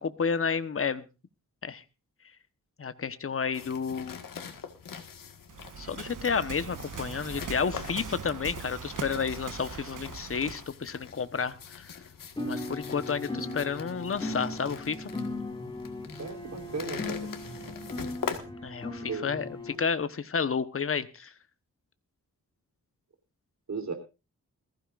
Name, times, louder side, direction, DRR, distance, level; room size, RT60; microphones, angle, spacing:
voice 1, 0.0-1.0 1.6-1.8 2.8-4.2 5.8-11.8 12.4-15.1 18.6-21.3, left 6 dB, 45° left, 11 dB, 1.1 m, -31 dB
sound 1, 3.5-18.4, left 7 dB, 85° left, 1.8 m, -43 dB
Waves surf, 5.5-10.7, right 6 dB, 75° right, 1.3 m, -41 dB
sound 2, 12.4-19.8, left 2 dB, 15° left, 5.3 m, -37 dB
voice 2, 16.2-17.2 19.0-19.3 23.7-23.9, right 4 dB, 55° right, 6 dB, 3.5 m, -35 dB
20.5 x 15.0 x 2.5 m, 0.30 s
wide cardioid pair, 100°, 32 cm